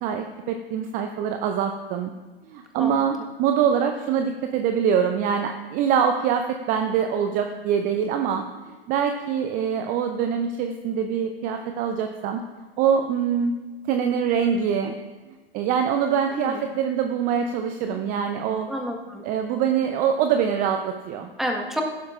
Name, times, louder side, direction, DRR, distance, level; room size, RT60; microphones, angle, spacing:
voice 1, 0.0-2.1 2.5-12.4 12.8-13.5 13.8-14.9 15.3-18.7 19.2-21.3, right 7 dB, 25° right, 6 dB, 0.6 m, -24 dB
voice 2, 16.3-16.6 18.7-19.2 21.4-21.8, equal, ahead, 0 dB, 1.4 m, -29 dB
16.0 x 12.0 x 2.5 m, 1.2 s
figure-of-eight pair, 105°, 30 cm